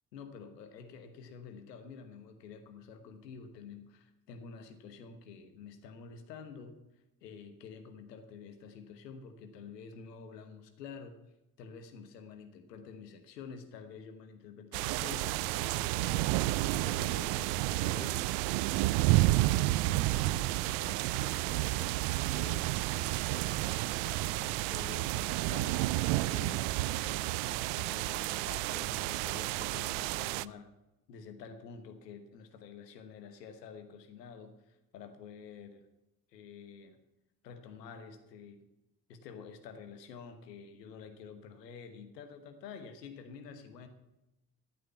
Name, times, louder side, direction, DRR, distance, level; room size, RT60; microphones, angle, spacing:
voice 1, 0.1-11.2 11.6-16.4 16.7-18.3 19.2-22.0 22.3-30.7 31.1-35.8 36.3-37.0 37.4-38.7 39.1-43.9, left 5 dB, 80° left, 7 dB, 1.3 m, -49 dB
sound 1, 14.7-30.5, right 18 dB, 65° right, 0.5 m, -31 dB
13.5 x 8.7 x 7.0 m, 0.94 s
figure-of-eight pair, 40°, 48 cm